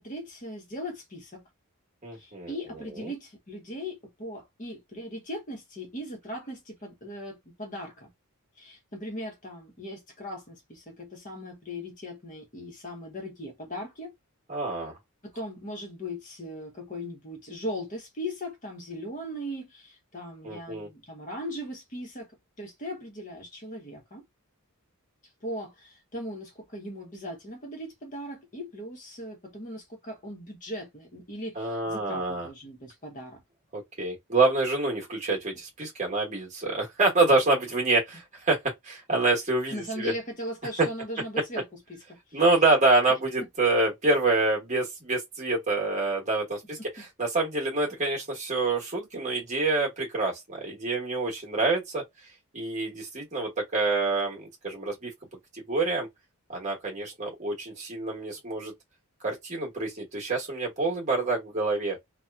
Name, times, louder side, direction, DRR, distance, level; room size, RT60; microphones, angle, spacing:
voice 1, 0.0-1.4 2.2-8.1 8.6-14.1 15.2-22.3 22.6-24.2 25.4-33.4 35.8-35.9 39.7-42.4 43.4-43.5, equal, 35° left, 0.9 m, -39 dB
voice 2, 2.0-2.5 3.0-3.1 14.5-14.9 20.4-20.9 31.6-32.5 33.7-38.6 38.8-40.1 42.3-46.8 47.2-52.0 52.5-55.1 55.5-56.1 56.5-58.7 59.2-62.0, right 3 dB, 30° right, 1.1 m, -26 dB
2.8 x 2.2 x 2.3 m
head